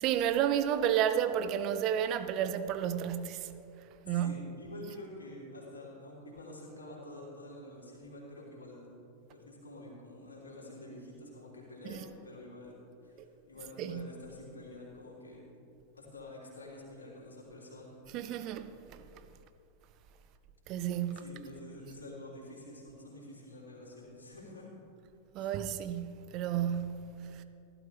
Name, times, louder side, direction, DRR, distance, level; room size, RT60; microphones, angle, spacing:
voice 1, 0.0-3.5 4.1-4.5 11.9-12.0 13.8-14.1 18.1-19.0 20.7-21.2 25.3-27.4, right 9 dB, 40° right, 0.7 m, -32 dB
voice 2, 4.0-8.9 9.2-12.7 13.0-15.4 15.9-17.9 21.1-24.7 25.4-25.5, left 1 dB, 75° left, 3.2 m, -48 dB
15.5 x 12.0 x 3.5 m
figure-of-eight pair, 90°, 0 cm